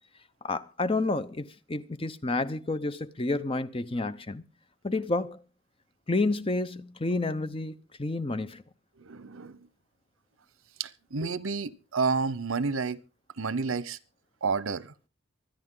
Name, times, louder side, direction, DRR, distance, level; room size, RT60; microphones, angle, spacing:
voice 1, 0.4-4.4 4.8-5.4 6.1-8.6, left 2 dB, 25° left, 0.7 m, -30 dB
voice 2, 9.0-9.7 10.8-13.0 13.4-14.0 14.4-15.1, right 4 dB, 90° right, 0.8 m, -30 dB
24.5 x 10.0 x 3.8 m
head